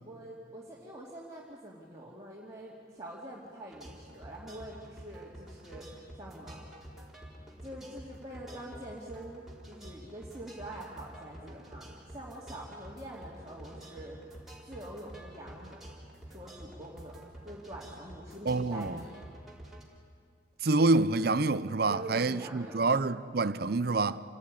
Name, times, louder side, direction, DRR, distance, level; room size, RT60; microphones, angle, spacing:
voice 1, 0.0-6.6 7.6-14.2 14.6-15.8 16.3-17.2 17.4-19.2 21.9-22.8, right 1 dB, 20° right, 2.5 m, -45 dB
sound 1, 3.7-19.8, right 1 dB, ahead, 3.8 m, -49 dB
voice 2, 18.4-19.0 20.6-24.2, right 3 dB, 50° right, 0.6 m, -27 dB
27.5 x 18.0 x 9.8 m
head